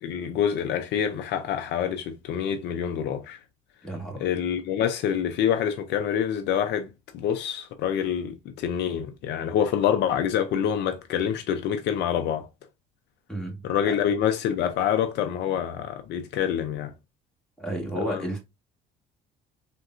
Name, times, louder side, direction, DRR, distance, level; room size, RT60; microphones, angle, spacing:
voice 1, 0.0-3.4 4.2-6.9 7.1-12.5 13.6-16.9 18.1-18.2, left 9 dB, 70° left, 0.5 m, -26 dB
voice 2, 3.8-4.2 13.3-13.6 13.8-13.9 17.6-18.4, right 1 dB, 5° left, 1.4 m, -31 dB
3.6 x 2.2 x 2.4 m
cardioid pair, 95°, 18 cm